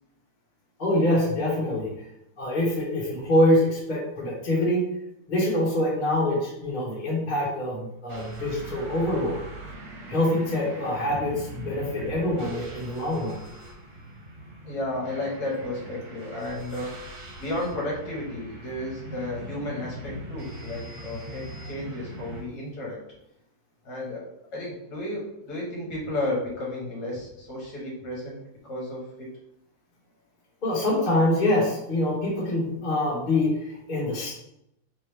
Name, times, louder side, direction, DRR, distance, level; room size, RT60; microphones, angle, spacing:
voice 1, 0.8-1.9 2.4-4.8 5.3-9.4 10.1-13.4 30.6-34.3, left 1 dB, 30° left, -5 dB, 0.9 m, -25 dB
sound 1, 8.1-22.4, right 1 dB, 80° right, 1.8 m, -41 dB
voice 2, 14.6-16.9 17.4-23.0 23.8-24.2 24.5-28.4 28.7-29.3, left 1 dB, 55° left, -4 dB, 1.4 m, -33 dB
3.6 x 3.0 x 3.3 m, 0.84 s
omnidirectional pair, 2.3 m